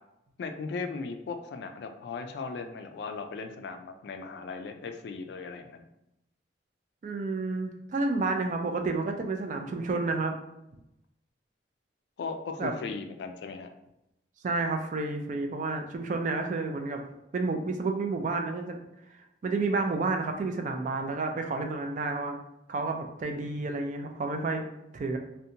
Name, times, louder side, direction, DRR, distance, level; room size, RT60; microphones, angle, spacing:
voice 1, 0.4-5.8 12.2-13.7, left 4 dB, 65° left, 6 dB, 0.3 m, -37 dB
voice 2, 7.0-10.3 12.6-12.7 14.4-17.0 17.3-18.8 19.4-22.4 22.7-24.7 24.9-25.2, right 3 dB, 45° right, 4 dB, 0.3 m, -30 dB
2.6 x 2.2 x 2.7 m, 0.86 s
head